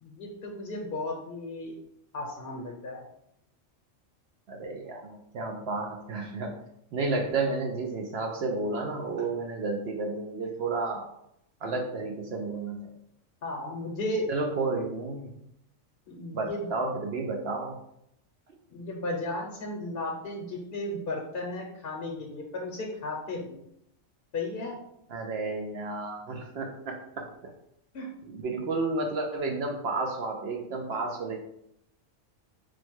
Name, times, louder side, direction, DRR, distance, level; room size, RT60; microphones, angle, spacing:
voice 1, 0.0-1.7 2.1-3.0 13.4-14.3 16.1-16.7 18.7-23.6 24.3-24.8 27.9-28.1, left 2 dB, 55° left, 0 dB, 0.8 m, -34 dB
voice 2, 4.5-6.5 6.9-11.1 11.6-12.9 14.3-15.4 16.3-17.8 25.1-26.9 28.3-31.4, right 3 dB, 65° right, 2 dB, 0.7 m, -31 dB
4.5 x 2.1 x 4.5 m, 0.78 s
omnidirectional pair, 1.4 m